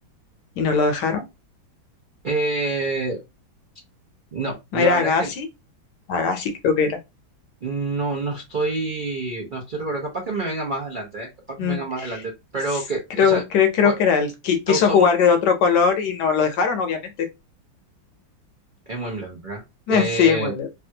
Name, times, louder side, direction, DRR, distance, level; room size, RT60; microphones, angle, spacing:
voice 1, 0.6-1.3 4.7-5.5 6.1-7.0 11.6-12.1 13.2-17.3 19.9-20.7, left 6 dB, 70° left, 1.1 m, -20 dB
voice 2, 2.2-3.2 4.3-5.3 7.6-13.4 13.8-14.0 14.7-15.0 18.9-19.6 19.9-20.5, right 3 dB, 90° right, 0.4 m, -27 dB
3.3 x 2.3 x 2.7 m
omnidirectional pair, 2.1 m